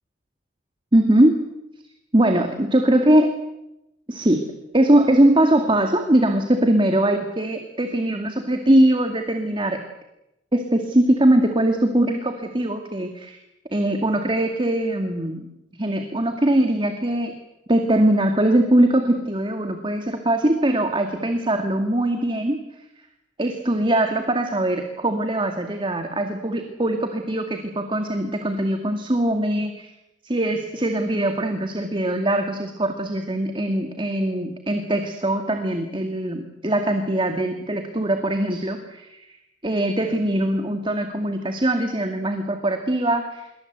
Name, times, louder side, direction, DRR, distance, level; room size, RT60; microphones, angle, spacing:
voice 1, 0.9-1.5 2.1-3.3 4.1-9.8 10.5-13.4 13.7-15.5 15.8-17.4 17.7-22.6 23.4-29.9 30.2-39.2 39.6-43.5, right 1 dB, 25° right, 6 dB, 2.1 m, -21 dB
26.5 x 23.0 x 8.1 m, 0.90 s
head